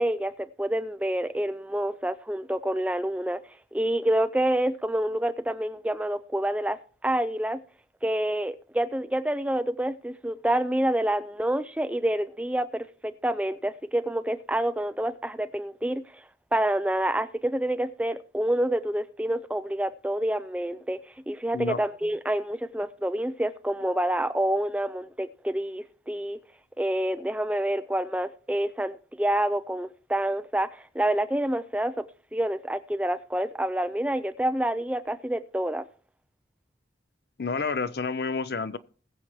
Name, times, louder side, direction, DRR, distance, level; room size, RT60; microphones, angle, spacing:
voice 1, 0.0-3.4 3.7-6.8 7.0-7.6 8.0-16.2 16.5-21.0 21.3-26.4 26.8-32.0 32.3-35.9, right 1 dB, 5° right, 0.4 m, -27 dB
voice 2, 37.4-38.8, left 4 dB, 60° left, 0.6 m, -29 dB
20.5 x 7.2 x 3.1 m
head